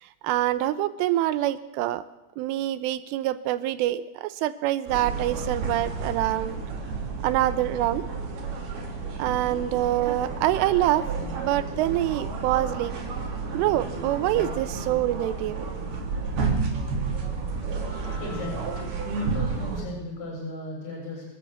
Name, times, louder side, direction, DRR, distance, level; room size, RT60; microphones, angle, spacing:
voice 1, 0.0-2.0 2.4-6.6 7.2-8.0 9.2-11.1 11.4-12.9 13.5-15.7, right 14 dB, 80° right, 14 dB, 3.3 m, -25 dB
sound 1, 4.9-19.8, right 4 dB, 50° right, 5.0 m, -31 dB
voice 2, 18.2-18.7 19.2-21.2, left 2 dB, 25° left, -2 dB, 8.3 m, -36 dB
26.0 x 13.0 x 8.3 m, 1.0 s
omnidirectional pair, 5.9 m